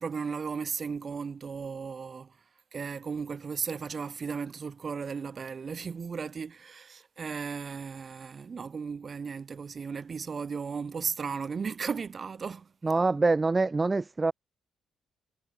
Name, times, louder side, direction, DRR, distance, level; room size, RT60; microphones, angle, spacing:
voice 1, 0.0-2.3 2.7-12.7, right 5 dB, 40° right, 1.7 m, -35 dB
voice 2, 12.8-14.3, right 3 dB, 25° right, 0.4 m, -25 dB
cardioid pair, 90°, 0 cm